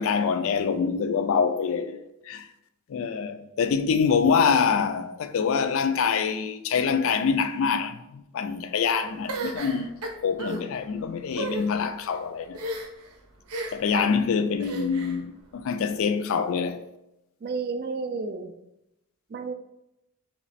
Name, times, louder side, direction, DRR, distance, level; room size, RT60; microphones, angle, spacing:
voice 1, 0.0-2.0 2.2-2.5 2.9-12.6 13.7-16.8, left 6 dB, 60° left, 0.3 m, -25 dB
sound 1, 9.3-10.6 11.3-11.7 12.5-13.1 13.5-13.9 14.6-15.2, right 2 dB, 90° right, 0.7 m, -33 dB
voice 2, 17.4-18.5 19.3-19.5, right 4 dB, 45° right, 0.3 m, -31 dB
3.3 x 3.0 x 4.0 m
head